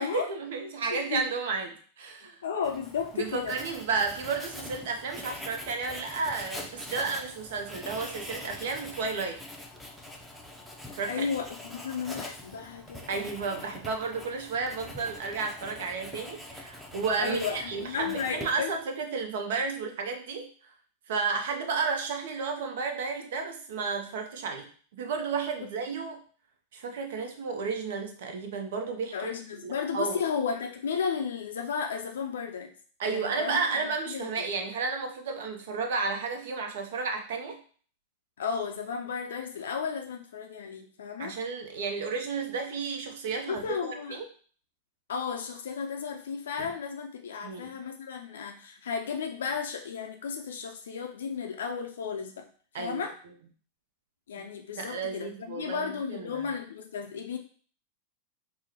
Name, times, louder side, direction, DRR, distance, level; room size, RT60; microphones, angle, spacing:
voice 1, 0.0-2.4 3.1-9.4 10.9-11.2 13.1-20.5 21.1-26.2 26.7-29.2 29.6-30.2 33.0-37.6 41.2-44.2 47.4-47.7 52.7-53.0 54.4-54.5 54.7-56.6, right 4 dB, 55° right, 5 dB, 0.6 m, -32 dB
voice 2, 0.9-1.2 2.4-3.6 11.1-13.2 17.2-18.7 29.1-32.7 33.1-33.6 34.1-34.3 38.4-41.3 43.5-44.2 45.1-52.5 52.8-53.1 54.3-57.4, left 6 dB, 65° left, 3 dB, 0.4 m, -34 dB
Writing, 2.6-18.8, left 1 dB, ahead, 0.6 m, -44 dB
sound 1, 43.5-43.9 46.5-47.0 47.5-47.6, left 1 dB, 30° right, 1.3 m, -52 dB
4.7 x 2.0 x 2.8 m, 0.44 s
figure-of-eight pair, 90°, 0 cm